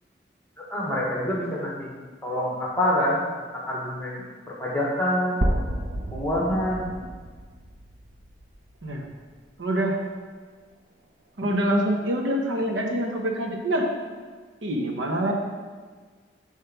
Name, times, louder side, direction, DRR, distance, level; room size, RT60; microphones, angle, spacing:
voice 1, 0.6-1.9 2.2-5.4 6.1-6.8, left 1 dB, 10° left, -3 dB, 1.1 m, -26 dB
sound 1, 5.4-9.3, right 1 dB, 60° right, 0.7 m, -31 dB
voice 2, 9.6-10.0 11.4-13.9 14.6-15.3, right 1 dB, 90° right, 2 dB, 0.9 m, -25 dB
6.6 x 3.3 x 5.8 m, 1.5 s
head